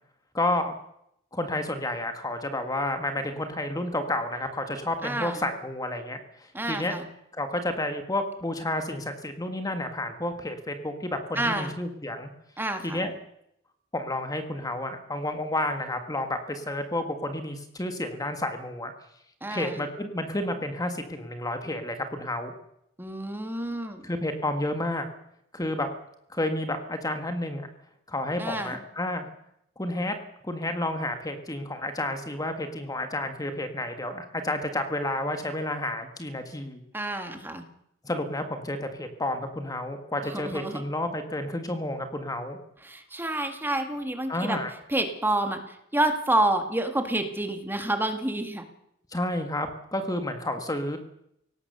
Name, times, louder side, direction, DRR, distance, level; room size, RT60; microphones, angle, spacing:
voice 1, 0.3-0.7 1.3-7.0 7.3-12.3 12.8-13.1 13.9-18.9 19.5-22.5 24.0-25.0 25.5-25.9 26.3-27.7 28.1-29.3 29.8-30.1 30.4-36.8 38.0-42.6 44.3-44.7 49.1-51.0, left 1 dB, 20° left, 7 dB, 1.6 m, -30 dB
voice 2, 5.0-5.5 6.5-7.1 11.4-11.7 12.6-13.1 19.4-19.9 23.0-24.1 28.4-28.8 36.9-37.6 40.2-40.8 42.8-44.6 44.9-48.6, right 1 dB, 10° right, 6 dB, 1.9 m, -29 dB
22.0 x 18.0 x 6.8 m, 0.77 s
head